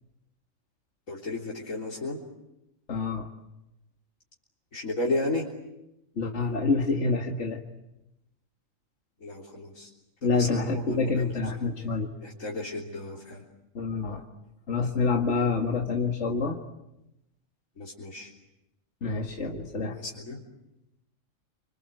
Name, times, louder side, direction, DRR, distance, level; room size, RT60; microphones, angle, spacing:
voice 1, 1.1-2.2 4.7-5.5 9.2-9.9 10.2-11.7 12.2-13.4 17.8-18.3 19.9-20.4, left 2 dB, 80° left, -4 dB, 4.0 m, -34 dB
voice 2, 2.9-3.3 6.2-7.6 10.2-12.1 13.8-14.2 14.7-16.6 19.0-20.0, left 4 dB, 60° left, 1 dB, 2.1 m, -27 dB
28.5 x 25.5 x 7.9 m, 0.90 s
omnidirectional pair, 1.4 m